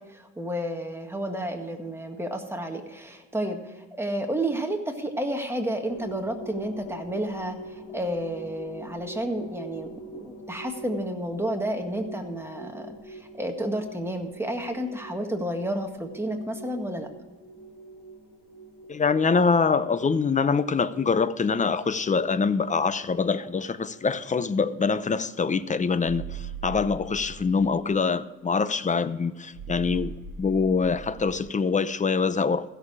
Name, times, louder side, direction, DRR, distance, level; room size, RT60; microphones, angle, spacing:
voice 1, 0.0-17.1, right 1 dB, 10° right, 1.7 m, -31 dB
sound 1, 5.9-25.6, right 2 dB, 75° left, 3.5 m, -45 dB
voice 2, 18.9-32.7, left 5 dB, 25° left, 0.6 m, -24 dB
sound 2, 26.1-27.9 29.5-31.5, right 6 dB, 80° right, 1.1 m, -39 dB
15.5 x 6.8 x 4.8 m
cardioid pair, 90°, 30 cm